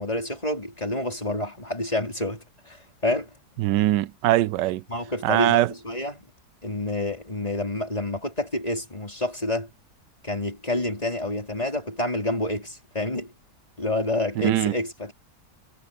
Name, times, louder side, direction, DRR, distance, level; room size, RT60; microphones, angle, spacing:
voice 1, 0.0-3.3 4.9-6.2 6.6-9.7 10.2-13.3 13.8-15.1, left 1 dB, 20° left, 4.6 m, -28 dB
voice 2, 3.6-4.8 5.2-5.7 14.4-14.8, right 15 dB, 90° right, 1.2 m, -21 dB
omnidirectional pair, 1.8 m